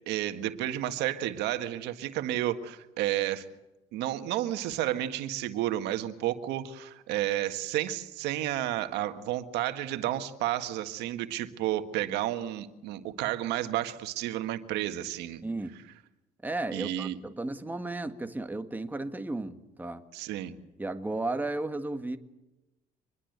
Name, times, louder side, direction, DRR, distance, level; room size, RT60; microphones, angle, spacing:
voice 1, 0.1-3.5 3.9-15.4 16.7-17.2 20.1-20.5, right 13 dB, 90° right, 8 dB, 1.7 m, -31 dB
voice 2, 15.4-15.8 16.4-20.0 20.8-22.2, right 2 dB, 10° right, 7 dB, 1.7 m, -34 dB
25.5 x 21.5 x 8.1 m, 0.99 s
cardioid pair, 110°, 17 cm